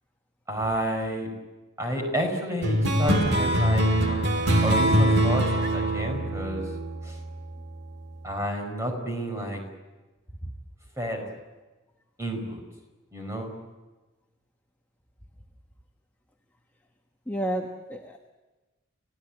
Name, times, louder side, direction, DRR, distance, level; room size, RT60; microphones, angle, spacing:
voice 1, 0.5-1.3 1.8-4.3 4.6-6.7 7.0-7.2 8.2-9.6 11.0-11.2 12.2-12.6 13.1-13.5, equal, 15° right, 3 dB, 4.8 m, -30 dB
sound 1, 2.6-7.5, right 1 dB, 55° right, 2.1 m, -23 dB
voice 2, 17.3-18.3, right 1 dB, 10° left, 1 dB, 1.2 m, -31 dB
30.0 x 16.5 x 8.8 m, 1.2 s
head